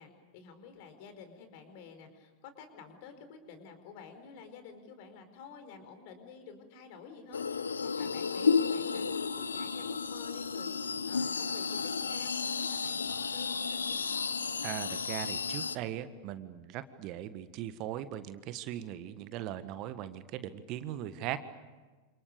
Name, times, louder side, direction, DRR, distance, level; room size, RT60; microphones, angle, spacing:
voice 1, 0.0-14.3 18.9-19.0, left 5 dB, 50° left, 8 dB, 4.8 m, -51 dB
sound 1, 7.3-15.8, left 5 dB, 75° left, 1.0 m, -32 dB
voice 2, 14.6-21.4, right 12 dB, 40° right, 12 dB, 1.5 m, -39 dB
28.5 x 27.5 x 7.0 m, 1.3 s
figure-of-eight pair, 90°, 0 cm